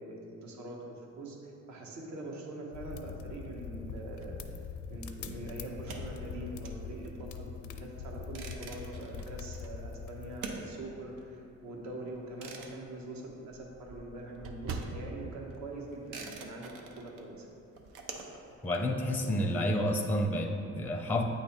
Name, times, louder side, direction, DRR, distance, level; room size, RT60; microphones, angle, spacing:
voice 1, 0.0-4.4 4.9-17.5, right 2 dB, 70° right, -1 dB, 1.2 m, -43 dB
sound 1, 2.7-10.4, left 6 dB, 75° left, 0.5 m, -43 dB
sound 2, 4.1-5.4 6.0-6.1 7.5-8.1 8.5-11.2 11.6-11.8 12.1-12.2 12.5-12.6 12.8-16.6 16.9-17.1 17.4-18.0, right 3 dB, 50° right, 0.6 m, -46 dB
sound 3, 5.9-14.0 14.3-20.1, right 4 dB, 90° right, 0.7 m, -48 dB
voice 2, 18.6-21.2, left 1 dB, 5° left, 3 dB, 0.5 m, -30 dB
8.5 x 3.3 x 4.4 m, 2.7 s
cardioid pair, 90°, 30 cm